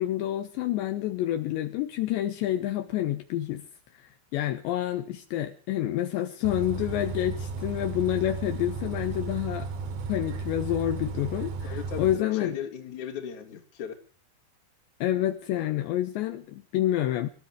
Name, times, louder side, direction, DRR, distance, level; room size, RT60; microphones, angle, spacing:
voice 1, 0.0-3.6 4.0-9.7 10.1-12.5 15.0-17.3, left 13 dB, 75° left, 8 dB, 3.1 m, -28 dB
Bus, 6.4-12.2, right 4 dB, 70° right, 4.4 m, -34 dB
voice 2, 11.6-13.9, left 8 dB, 45° left, 3 dB, 3.4 m, -37 dB
28.0 x 14.0 x 3.2 m, 0.37 s
omnidirectional pair, 5.4 m